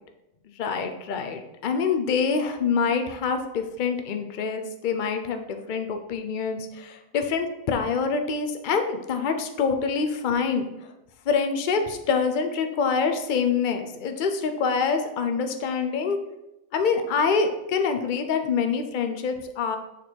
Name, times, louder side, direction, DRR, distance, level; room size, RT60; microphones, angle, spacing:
voice 1, 0.6-10.7 11.3-16.2 16.7-19.8, left 5 dB, 55° left, 6 dB, 0.5 m, -26 dB
6.8 x 4.3 x 4.5 m, 0.93 s
omnidirectional pair, 1.6 m